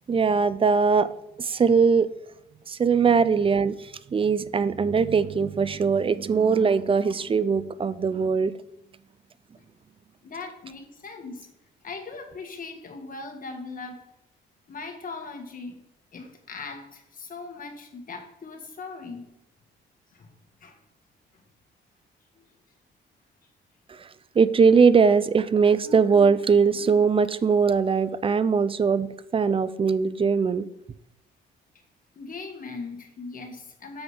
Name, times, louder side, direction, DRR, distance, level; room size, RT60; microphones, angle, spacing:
voice 1, 0.1-1.1 1.4-2.1 2.7-8.5 23.9-24.1 24.4-30.7, right 5 dB, 25° right, 15 dB, 0.4 m, -21 dB
voice 2, 10.2-11.5 11.8-14.0 14.7-15.8 16.1-19.3 20.1-20.3 20.6-20.8 22.3-22.4 32.1-34.0, left 4 dB, 45° left, 4 dB, 1.5 m, -39 dB
7.1 x 3.8 x 4.9 m, 0.86 s
cardioid pair, 90°, 20 cm